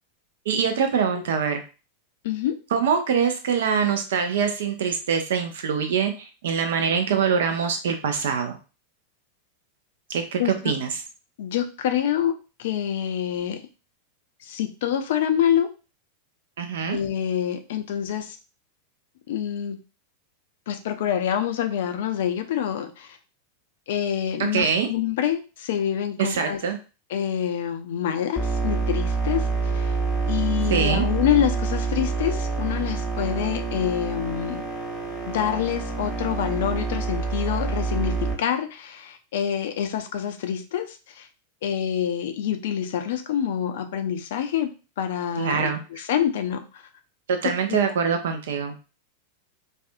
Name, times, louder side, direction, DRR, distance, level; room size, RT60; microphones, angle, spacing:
voice 1, 0.5-1.6 2.7-8.6 10.1-10.9 16.6-17.0 24.5-24.9 26.2-26.8 30.7-31.0 45.4-45.8 47.3-48.8, right 6 dB, 60° right, 6 dB, 0.5 m, -24 dB
voice 2, 10.4-10.7 11.4-13.6 14.4-15.7 16.9-18.4 19.3-19.8 20.7-23.2 23.9-26.6 27.1-29.9 30.3-34.6 35.3-41.3 41.6-44.7 45.0-46.8 47.4-47.8, left 9 dB, 55° left, 8 dB, 0.4 m, -26 dB
sound 1, 28.4-38.3, right 4 dB, 5° left, 0.9 m, -27 dB
2.5 x 2.3 x 2.6 m, 0.33 s
figure-of-eight pair, 90°, 0 cm